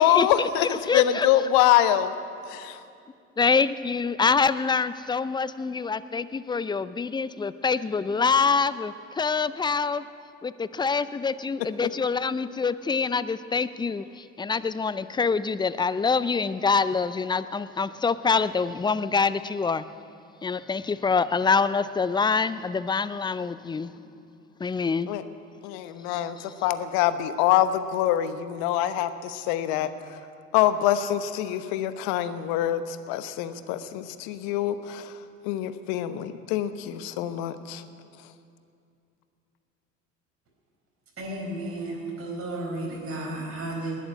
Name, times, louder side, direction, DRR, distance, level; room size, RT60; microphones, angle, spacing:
voice 1, 0.0-2.1 2.5-2.8 11.8-11.9 25.1-25.2 25.6-30.2 30.5-35.1 35.4-37.8, left 11 dB, 65° left, 12 dB, 1.0 m, -25 dB
voice 2, 0.9-1.3 3.4-10.0 10.4-19.8 20.4-23.9 24.6-25.1, left 5 dB, 10° left, 15 dB, 0.5 m, -25 dB
voice 3, 41.2-44.0, right 2 dB, 35° right, -3 dB, 4.9 m, -33 dB
19.5 x 7.2 x 9.7 m, 2.5 s
hypercardioid pair, 60°, 39 cm